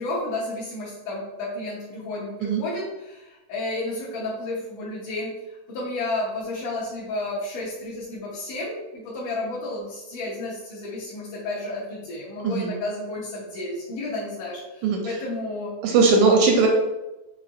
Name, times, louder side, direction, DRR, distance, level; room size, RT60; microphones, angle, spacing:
voice 1, 0.0-5.3 5.7-15.7, left 2 dB, 80° left, -8 dB, 2.5 m, -32 dB
voice 2, 14.8-15.1 15.8-16.7, right 4 dB, 80° right, 1 dB, 1.7 m, -19 dB
5.8 x 2.8 x 2.5 m, 1.0 s
omnidirectional pair, 3.7 m